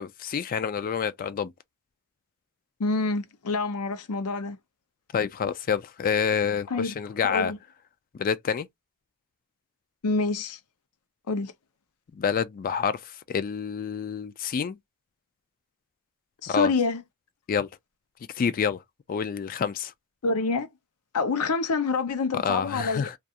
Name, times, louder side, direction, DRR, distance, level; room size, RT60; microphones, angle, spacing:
voice 1, 0.0-1.5 5.1-7.5 8.1-8.7 12.2-14.8 16.5-16.7 17.5-17.7 18.3-18.8 19.1-19.9 22.3-23.1, left 7 dB, 40° left, 0.3 m, -28 dB
voice 2, 2.8-4.6 6.7-6.9 7.2-7.6 10.0-10.6 11.3-11.5 16.4-17.0 20.2-20.7 21.1-23.0, left 3 dB, 85° left, 0.6 m, -27 dB
2.3 x 2.3 x 2.7 m
head